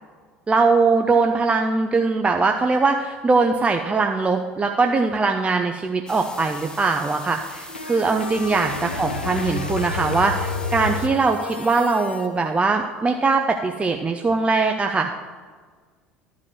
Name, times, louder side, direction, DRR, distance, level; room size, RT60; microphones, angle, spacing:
voice 1, 0.5-15.1, right 4 dB, 20° right, 4 dB, 0.6 m, -21 dB
sound 1, 6.1-11.1, left 1 dB, 10° left, 1.4 m, -40 dB
sound 2, 7.3-12.3, left 4 dB, 85° left, 0.7 m, -30 dB
12.0 x 4.8 x 7.2 m, 1.5 s
figure-of-eight pair, 65°, 6 cm